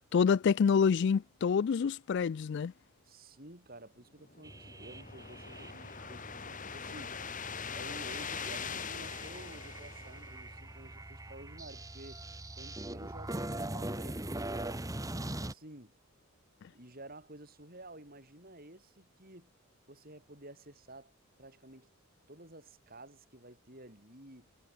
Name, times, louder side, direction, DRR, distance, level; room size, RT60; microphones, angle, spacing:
voice 1, 0.1-2.7, left 6 dB, 50° left, 0.3 m, -27 dB
voice 2, 3.0-7.2 7.7-12.2 12.6-14.8 15.1-15.9 16.7-19.5 19.9-21.1 21.4-21.9 22.3-24.5, right 1 dB, 40° right, 6.7 m, -52 dB
sound 1, 4.2-10.7, left 6 dB, 35° left, 2.5 m, -42 dB
sound 2, 4.4-15.5, right 1 dB, 15° right, 1.6 m, -42 dB
head